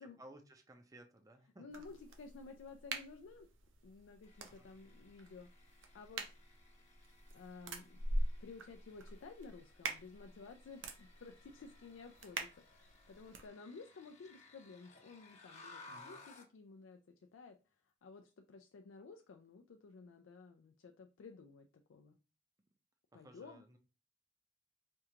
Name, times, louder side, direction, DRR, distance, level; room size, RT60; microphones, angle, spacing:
voice 1, 0.0-1.6 4.5-4.7 15.9-16.2 23.1-23.8, right 1 dB, 20° right, 0.5 m, -58 dB
voice 2, 1.6-3.5 3.8-5.5 5.9-6.2 7.3-8.0 8.4-17.6 18.0-22.2 23.1-23.6, left 4 dB, 80° left, 0.4 m, -54 dB
sound 1, 1.7-13.5, right 1 dB, 75° right, 0.6 m, -45 dB
sound 2, 4.2-16.6, left 2 dB, 35° left, 0.9 m, -61 dB
4.4 x 2.4 x 2.8 m
head